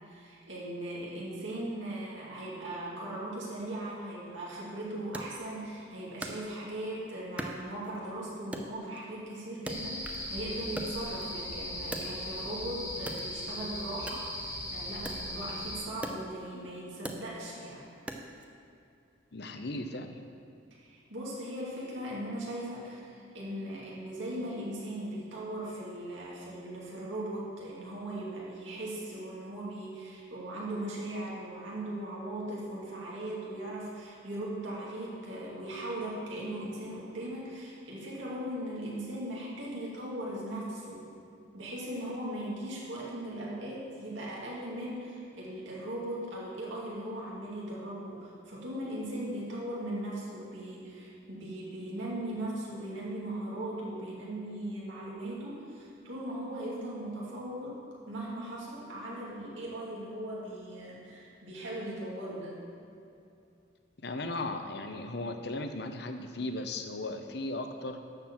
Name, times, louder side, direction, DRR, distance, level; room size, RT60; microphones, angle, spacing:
voice 1, 0.1-17.9 20.8-41.1 41.5-57.8 58.1-62.6, right 1 dB, 80° right, -5 dB, 2.5 m, -39 dB
Wood, 5.1-6.9 7.4-8.1 8.5-10.3 10.6-12.6 13.0-18.5, right 1 dB, 5° right, 0.5 m, -42 dB
sound 1, 9.7-15.8, left 1 dB, 20° left, 1.6 m, -38 dB
voice 2, 19.3-20.2 64.0-68.0, left 2 dB, 55° left, 6 dB, 0.7 m, -36 dB
12.0 x 4.5 x 7.4 m, 2.6 s
head